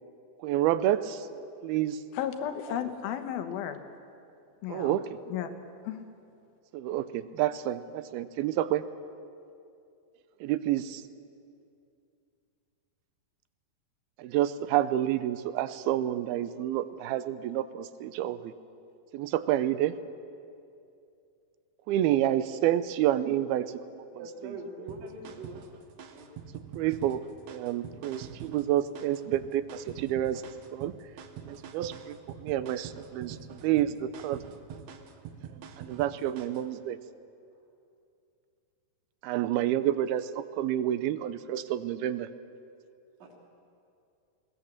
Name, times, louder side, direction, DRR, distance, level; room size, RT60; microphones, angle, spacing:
voice 1, 0.4-1.2 1.6-2.0 4.7-5.1 6.7-8.8 10.4-11.0 14.2-18.5 19.1-19.9 21.9-23.7 24.4-24.6 26.8-27.2 27.5-30.4 30.7-30.9 31.5-32.2 32.4-34.4 35.8-37.0 39.2-42.3, right 12 dB, 85° right, 13 dB, 2.6 m, -29 dB
voice 2, 2.1-3.8 4.6-5.0 5.3-6.0, left 9 dB, 80° left, 8 dB, 2.9 m, -34 dB
voice 3, 24.1-25.6 26.1-26.3 43.2-43.3, right 2 dB, 45° right, -4 dB, 4.2 m, -42 dB
sound 1, 24.9-36.7, right 8 dB, 65° right, 2.0 m, -45 dB
21.0 x 19.0 x 7.4 m, 2.5 s
omnidirectional pair, 4.3 m